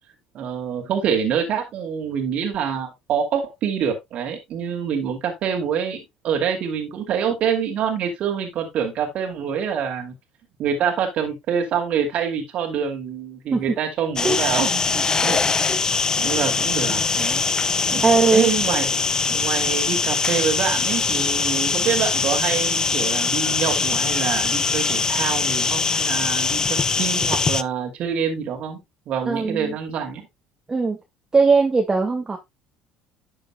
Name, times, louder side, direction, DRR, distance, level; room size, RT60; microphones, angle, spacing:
voice 1, 0.3-10.1 10.6-14.9 15.2-15.7 16.2-17.4 17.9-28.8 29.1-30.2, right 7 dB, 60° right, 2.5 m, -26 dB
sound 1, 14.2-27.6, left 4 dB, 25° left, 0.5 m, -22 dB
voice 2, 18.0-18.5 29.3-29.8 30.7-31.0 31.3-32.4, right 4 dB, 25° right, 1.8 m, -19 dB
11.5 x 6.8 x 2.2 m
hypercardioid pair, 70°, 2 cm